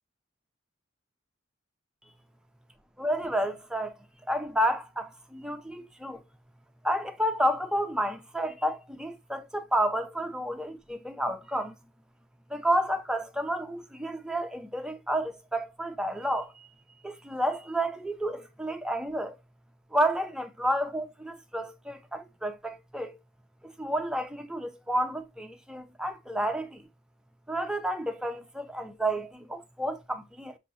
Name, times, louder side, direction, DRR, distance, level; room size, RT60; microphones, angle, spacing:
voice 1, 3.0-3.9 4.3-6.2 6.8-11.7 12.5-16.7 17.0-19.4 19.9-23.2 23.6-26.8 27.5-30.6, right 1 dB, 5° right, 0.5 m, -30 dB
6.1 x 3.0 x 2.7 m
head